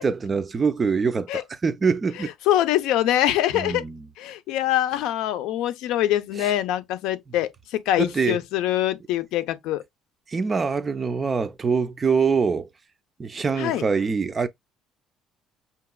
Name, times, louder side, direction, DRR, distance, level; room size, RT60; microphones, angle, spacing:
voice 1, 0.0-2.3 3.5-4.0 6.4-6.5 8.0-8.4 10.3-12.7 13.2-14.5, right 5 dB, 20° right, 0.4 m, -24 dB
voice 2, 2.2-3.8 4.2-9.8 13.6-13.9, left 13 dB, 85° left, 0.6 m, -24 dB
5.8 x 2.9 x 2.3 m
cardioid pair, 165°, 0 cm